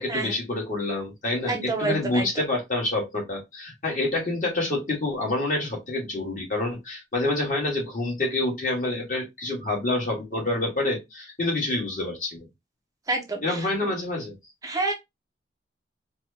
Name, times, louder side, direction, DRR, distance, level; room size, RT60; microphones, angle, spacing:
voice 1, 0.0-12.4 13.4-14.3, left 2 dB, 45° left, 1.6 m, -27 dB
voice 2, 1.5-2.3 13.1-13.9 14.6-14.9, right 3 dB, 20° right, 0.6 m, -28 dB
4.4 x 2.2 x 2.7 m
head